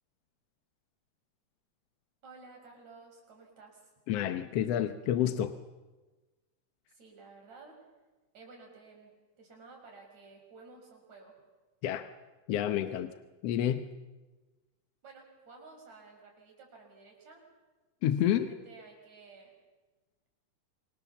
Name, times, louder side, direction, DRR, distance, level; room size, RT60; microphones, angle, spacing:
voice 1, 2.2-3.8 6.9-7.8 8.3-9.1 9.4-11.3 15.0-17.4 18.2-19.5, right 4 dB, 60° right, 1 dB, 7.4 m, -53 dB
voice 2, 4.1-5.5 11.8-12.1 12.5-13.1 13.4-13.9 18.0-18.5, left 11 dB, 65° left, 9 dB, 1.7 m, -29 dB
28.0 x 25.5 x 7.2 m, 1.2 s
omnidirectional pair, 3.6 m